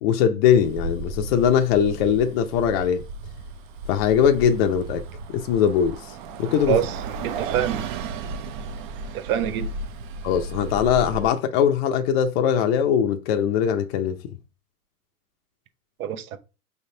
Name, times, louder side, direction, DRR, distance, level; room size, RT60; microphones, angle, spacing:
voice 1, 0.0-3.0 3.9-5.0 5.3-6.1 6.4-6.8 10.2-14.2, left 8 dB, 45° left, 0.5 m, -21 dB
Bus, 0.6-11.3, right 4 dB, 35° right, 0.4 m, -34 dB
voice 2, 7.2-7.8 9.1-9.7 16.0-16.4, right 10 dB, 65° right, 0.8 m, -25 dB
5.0 x 3.4 x 2.7 m
hypercardioid pair, 115°, 46 cm